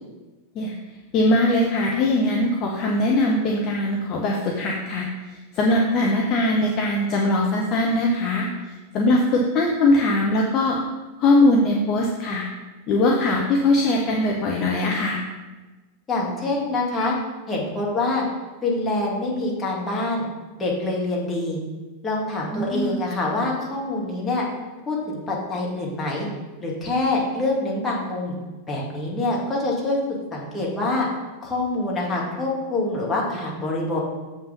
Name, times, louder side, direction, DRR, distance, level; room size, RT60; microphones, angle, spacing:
voice 1, 1.1-8.5 8.9-10.8 11.2-12.4 12.9-15.2 22.5-23.0, left 1 dB, 35° left, 0 dB, 1.0 m, -21 dB
voice 2, 16.1-17.2 17.5-18.2 18.6-20.2 20.6-21.6 22.0-24.4 24.9-26.3 26.6-28.3 28.7-30.0 30.3-31.1 31.4-34.0, left 2 dB, 15° left, -3 dB, 2.3 m, -25 dB
7.3 x 5.6 x 5.3 m, 1.2 s
figure-of-eight pair, 90°, 0 cm